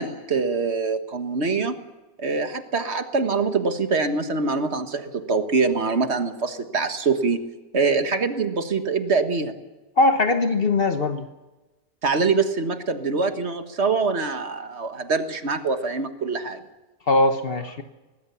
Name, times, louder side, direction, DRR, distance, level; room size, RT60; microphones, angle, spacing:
voice 1, 0.0-1.7 2.2-7.4 7.7-9.5 12.0-16.6, right 4 dB, 80° right, 8 dB, 1.8 m, -24 dB
voice 2, 10.0-11.3 17.1-17.8, left 2 dB, 60° left, 7 dB, 1.4 m, -20 dB
23.5 x 19.0 x 7.0 m, 1.1 s
omnidirectional pair, 1.1 m